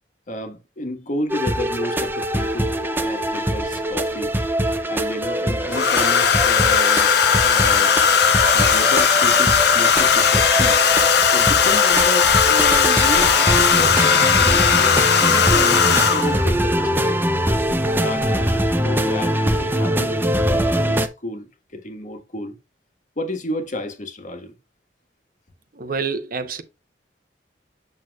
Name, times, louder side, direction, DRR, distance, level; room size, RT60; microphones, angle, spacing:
voice 1, 0.3-4.4 4.9-7.9 8.5-10.8 11.2-17.2 17.9-22.6 23.2-24.5, left 1 dB, 45° left, 1.5 m, -31 dB
sound 1, 1.3-21.1, equal, 10° right, 0.7 m, -22 dB
Domestic sounds home sounds, 2.1-2.2 3.6-4.3 5.7-16.5 17.7-18.0 18.2-18.6, left 7 dB, 65° left, 0.9 m, -17 dB
voice 2, 25.8-26.6, right 5 dB, 55° right, 0.9 m, -27 dB
8.0 x 6.4 x 2.4 m
head